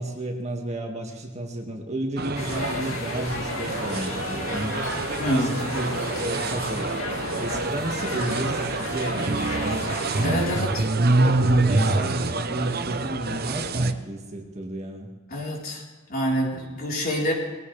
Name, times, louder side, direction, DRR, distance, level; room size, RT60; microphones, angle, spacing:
voice 1, 0.0-4.8 5.3-5.9 6.2-7.0 7.3-9.9 10.5-15.1, right 1 dB, 30° right, 1 dB, 2.0 m, -32 dB
sound 1, 2.2-13.9, right 2 dB, 50° right, 0.8 m, -26 dB
sound 2, 2.4-10.7, left 2 dB, 75° left, 2.5 m, -33 dB
voice 2, 5.2-5.6 10.2-10.8 15.3-15.8 16.1-17.3, equal, 45° left, -2 dB, 4.2 m, -26 dB
21.0 x 16.5 x 3.4 m, 1.4 s
head